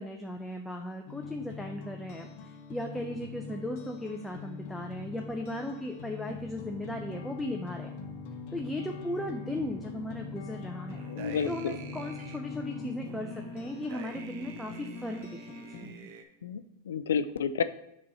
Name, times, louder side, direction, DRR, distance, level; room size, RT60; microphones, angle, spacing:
voice 1, 0.0-7.9 8.5-11.0 11.4-16.1, left 1 dB, 5° left, 2 dB, 0.7 m, -37 dB
sound 1, 1.1-15.9, left 4 dB, 60° left, 1.0 m, -43 dB
sound 2, 10.9-12.4 13.1-16.2, right 7 dB, 55° right, 0.8 m, -48 dB
voice 2, 11.1-11.7 16.4-17.6, left 7 dB, 85° left, 13 dB, 0.4 m, -30 dB
5.2 x 4.3 x 5.5 m, 0.83 s
hypercardioid pair, 115°, 0 cm